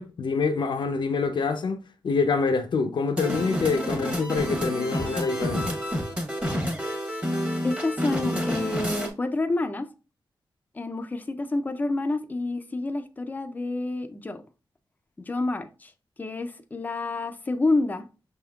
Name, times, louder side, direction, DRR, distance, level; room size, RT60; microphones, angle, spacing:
voice 1, 0.0-5.7, left 4 dB, 75° left, 0.6 m, -26 dB
sound 1, 3.2-9.1, equal, 15° right, 0.9 m, -29 dB
voice 2, 7.6-9.9 10.7-14.4 15.2-15.9 16.2-18.1, left 2 dB, 20° left, 0.4 m, -28 dB
5.9 x 3.5 x 2.3 m
wide cardioid pair, 150°, 8 cm